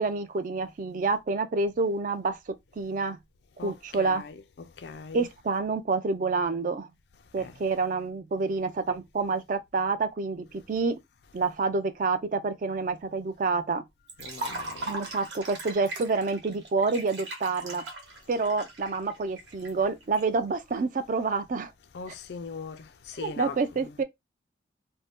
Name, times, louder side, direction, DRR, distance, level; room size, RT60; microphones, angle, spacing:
voice 1, 0.0-2.4 2.8-3.2 3.6-4.2 5.1-6.9 7.3-11.0 11.3-13.8 14.8-17.8 18.3-21.7 23.2-24.0, right 4 dB, 45° right, 0.4 m, -28 dB
voice 2, 4.0-4.4 4.8-5.3 7.4-7.5 14.2-14.9 21.9-23.9, left 5 dB, 65° left, 0.4 m, -40 dB
Liquid, 14.1-20.2, right 2 dB, 75° right, 1.0 m, -39 dB
2.6 x 2.1 x 3.4 m
head